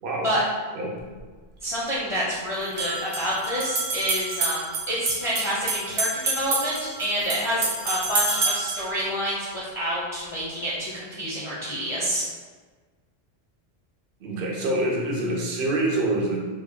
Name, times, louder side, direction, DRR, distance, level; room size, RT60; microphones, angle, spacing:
sound 1, 1.0-1.1 2.6-8.9, right 3 dB, 85° right, 0.9 m, -28 dB
voice 1, 1.6-12.3, equal, 35° left, -7 dB, 0.5 m, -28 dB
voice 2, 14.2-16.4, right 1 dB, 60° right, -1 dB, 0.8 m, -26 dB
3.6 x 2.1 x 3.6 m, 1.4 s
omnidirectional pair, 1.1 m